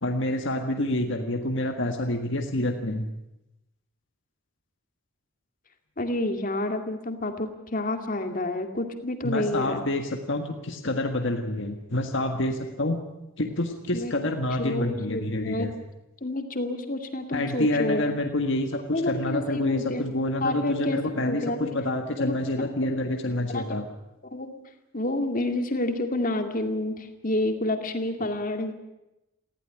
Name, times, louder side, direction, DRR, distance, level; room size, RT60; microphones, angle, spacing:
voice 1, 0.0-3.1 9.2-13.0 13.4-15.7 17.3-23.9 28.2-28.3, left 1 dB, 55° left, 4 dB, 1.6 m, -27 dB
voice 2, 6.0-9.8 13.9-14.1 14.6-15.7 16.2-18.0 18.9-20.0 20.4-21.7 22.2-22.4 23.5-23.7 24.3-24.6 24.9-28.7, left 1 dB, 40° left, 6 dB, 2.3 m, -29 dB
19.5 x 15.5 x 10.0 m, 0.93 s
head